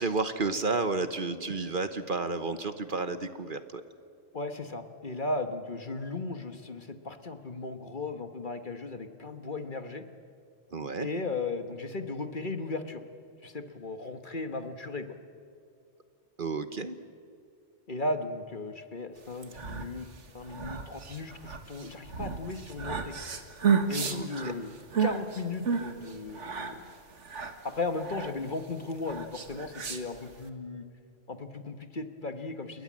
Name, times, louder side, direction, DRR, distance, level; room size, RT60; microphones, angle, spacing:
voice 1, 0.0-3.8 10.7-11.1 16.4-16.9 24.1-24.3, right 3 dB, 45° right, 10 dB, 1.2 m, -31 dB
voice 2, 4.3-10.0 11.0-13.0 13.4-15.1 17.9-20.1 20.3-23.1 23.9-24.7 25.0-26.8 27.6-30.9 31.3-32.8, left 3 dB, 45° left, 8 dB, 1.5 m, -36 dB
sound 1, 19.3-30.5, right 6 dB, 75° right, 2.0 m, -33 dB
28.5 x 22.0 x 7.5 m, 2.5 s
omnidirectional pair, 1.3 m